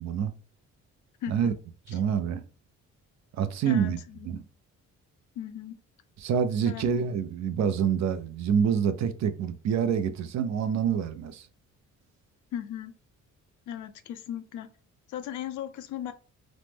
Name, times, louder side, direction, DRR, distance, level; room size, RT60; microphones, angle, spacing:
voice 1, 0.0-0.3 1.3-1.5 1.9-2.4 3.4-4.0 4.3-4.5 6.2-11.5, right 7 dB, 65° right, 0.5 m, -27 dB
voice 2, 1.2-1.5 1.9-2.0 3.7-4.3 5.4-5.8 6.7-6.8 12.5-12.9 13.7-14.7 15.1-16.1, left 10 dB, 75° left, 0.5 m, -37 dB
3.1 x 2.0 x 3.3 m
cardioid pair, 90°, 30 cm